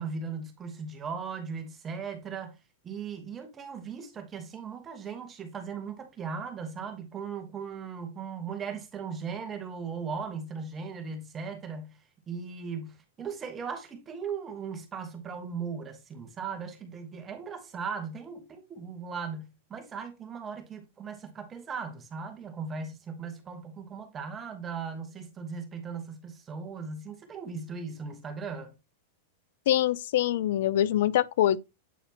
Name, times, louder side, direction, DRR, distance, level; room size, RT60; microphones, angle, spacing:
voice 1, 0.0-2.6 2.8-12.0 12.3-28.7, right 5 dB, 20° right, 1.1 m, -38 dB
voice 2, 29.7-31.6, left 12 dB, 70° left, 0.4 m, -24 dB
8.3 x 4.1 x 2.8 m
supercardioid pair, 145°, 0 cm